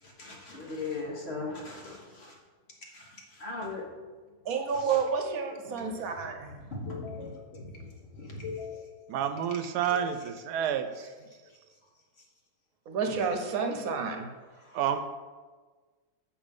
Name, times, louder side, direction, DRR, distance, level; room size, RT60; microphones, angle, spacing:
voice 1, 0.0-2.4 2.9-3.8 4.7-5.0 5.8-5.9 6.2-6.3 6.6-9.0 9.9-10.3 11.4-11.6 13.1-13.2 14.5-14.8, left 3 dB, 45° left, -1 dB, 1.4 m, -40 dB
voice 2, 4.5-6.5 12.9-14.3, right 5 dB, 65° right, 4 dB, 1.2 m, -30 dB
voice 3, 9.1-11.1 14.7-15.0, right 9 dB, 90° right, 9 dB, 1.2 m, -29 dB
7.3 x 4.7 x 5.2 m, 1.4 s
omnidirectional pair, 1.7 m